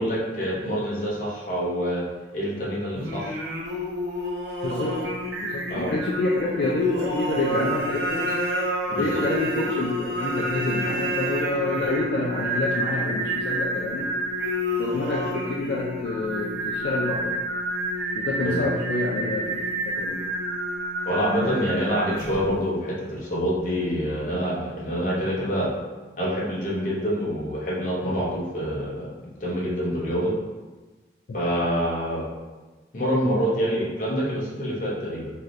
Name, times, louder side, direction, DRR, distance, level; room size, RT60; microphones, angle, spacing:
voice 1, 0.0-2.0 2.3-3.4 5.7-5.9 8.9-9.2 18.4-18.6 21.1-25.7 26.2-30.3 31.3-32.3 32.9-35.3, equal, 45° left, -5 dB, 0.7 m, -26 dB
Singing, 2.9-22.5, equal, 65° right, 0.6 m, -29 dB
voice 2, 4.6-5.1 5.4-8.3 8.9-14.1 14.8-17.4 18.1-20.2, left 2 dB, 65° left, -4 dB, 0.4 m, -27 dB
3.2 x 2.7 x 2.4 m, 1.2 s
head